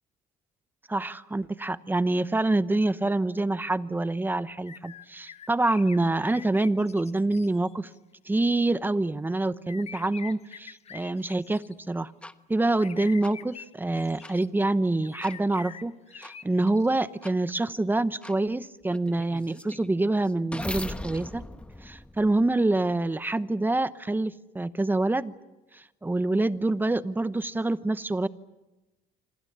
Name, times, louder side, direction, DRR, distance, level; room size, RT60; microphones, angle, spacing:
voice 1, 0.9-7.9 8.3-12.1 12.5-21.4 21.8-25.3 25.7-28.3, right 2 dB, 10° right, 14 dB, 0.9 m, -26 dB
sound 1, 4.7-8.0 9.7-11.9 12.7-14.5 15.0-17.0, left 7 dB, 40° left, 0.9 m, -46 dB
sound 2, 12.2-12.3 13.2-13.3 14.2-14.3 15.2-15.4 16.2-16.3 17.2-17.3 18.2-18.4 18.9-22.8, left 1 dB, 5° left, 1.1 m, -39 dB
26.5 x 26.5 x 7.5 m, 1.1 s
cardioid pair, 110°, 17 cm